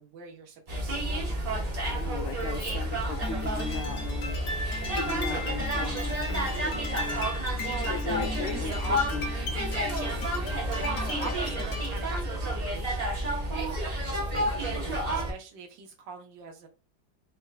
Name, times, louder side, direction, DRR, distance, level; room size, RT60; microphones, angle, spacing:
voice 1, 0.0-1.4 7.0-9.0 9.2-9.5 10.7-13.5 14.7-16.7, right 6 dB, 70° right, 2 dB, 1.6 m, -43 dB
sound 1, 0.7-15.3, right 1 dB, 35° right, 0.7 m, -30 dB
voice 2, 1.8-6.9 7.8-8.7 9.1-9.3 11.2-11.3 14.3-14.5, left 5 dB, 85° left, 7 dB, 1.4 m, -38 dB
sound 2, 3.2-12.1, left 2 dB, 60° left, 1.4 m, -37 dB
4.3 x 3.5 x 2.2 m, 0.32 s
omnidirectional pair, 2.1 m